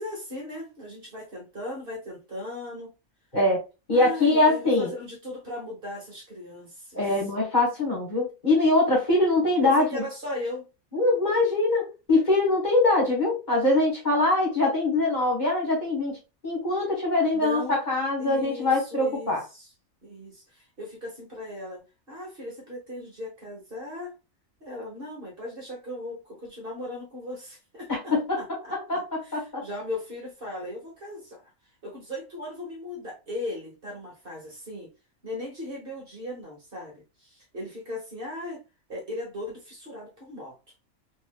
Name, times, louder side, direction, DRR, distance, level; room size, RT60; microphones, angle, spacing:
voice 1, 0.0-2.9 3.9-7.0 9.6-10.7 17.3-17.7 18.2-19.7 20.0-24.1 24.6-31.5 31.8-34.9 35.2-38.6 38.9-40.5, left 1 dB, 45° right, 1.3 m, -38 dB
voice 2, 3.9-4.9 6.9-10.0 10.9-16.2 16.4-19.4 27.9-29.6, left 2 dB, 35° left, 1.3 m, -23 dB
3.4 x 2.8 x 2.2 m
omnidirectional pair, 1.3 m